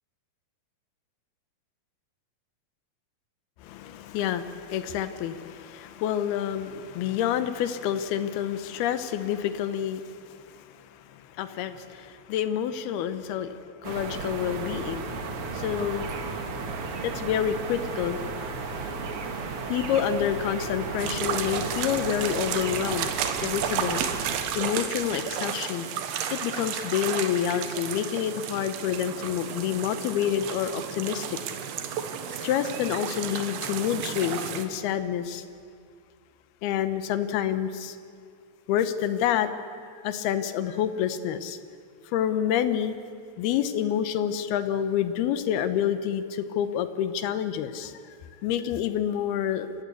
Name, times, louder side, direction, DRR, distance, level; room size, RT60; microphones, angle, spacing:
voice 1, 3.6-10.7 11.4-15.3 15.5-16.1 17.0-18.2 19.7-23.1 23.4-24.0 24.6-25.9 26.3-31.3 32.4-35.4 36.6-38.0 38.7-39.6 39.8-41.6 42.1-43.0 43.4-48.0 48.4-49.7, left 9 dB, 75° left, 11 dB, 2.6 m, -28 dB
Songbirds and Crows, 13.8-24.4, right 4 dB, 55° right, 1.6 m, -34 dB
sound 1, 21.0-34.7, right 8 dB, 75° right, 3.2 m, -33 dB
29.5 x 15.5 x 8.4 m, 2.2 s
omnidirectional pair, 4.9 m